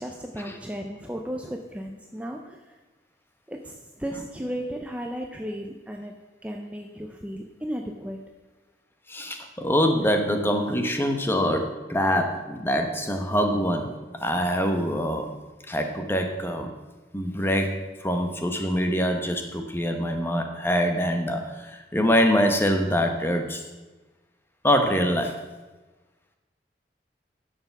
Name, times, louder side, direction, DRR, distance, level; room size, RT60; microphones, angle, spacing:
voice 1, 0.0-2.6 3.5-6.1 6.4-8.2, equal, 10° right, 2 dB, 0.6 m, -35 dB
voice 2, 9.1-15.4 15.7-16.7 17.1-23.6 24.6-25.4, equal, 15° left, 5 dB, 1.0 m, -24 dB
10.5 x 6.9 x 5.9 m, 1.2 s
head